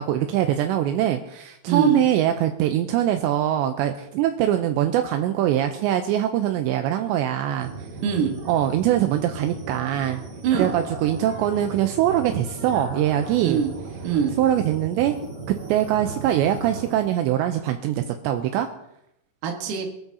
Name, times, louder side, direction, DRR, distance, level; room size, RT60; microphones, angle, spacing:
voice 1, 0.0-7.7 8.5-10.2 10.6-13.6 14.4-15.2 15.7-18.7, right 11 dB, 85° right, 6 dB, 2.6 m, -23 dB
voice 2, 1.7-2.0 8.0-8.4 10.4-10.7 13.4-13.7 14.0-14.4 19.4-19.9, right 7 dB, 70° right, 2 dB, 2.0 m, -22 dB
sound 1, 7.6-17.1, right 3 dB, 45° right, 2.8 m, -36 dB
23.0 x 13.0 x 2.8 m, 0.81 s
omnidirectional pair, 5.7 m